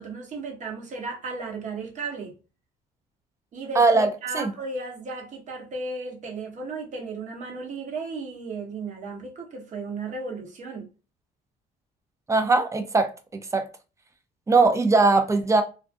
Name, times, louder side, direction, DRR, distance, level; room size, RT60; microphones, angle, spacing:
voice 1, 0.0-2.3 3.5-10.9, right 3 dB, 45° right, 0.9 m, -35 dB
voice 2, 3.8-4.1 4.3-4.5 12.3-13.1 13.5-13.7 14.5-15.6, right 3 dB, 15° right, 0.4 m, -20 dB
2.4 x 2.3 x 2.5 m
cardioid pair, 110°, 17 cm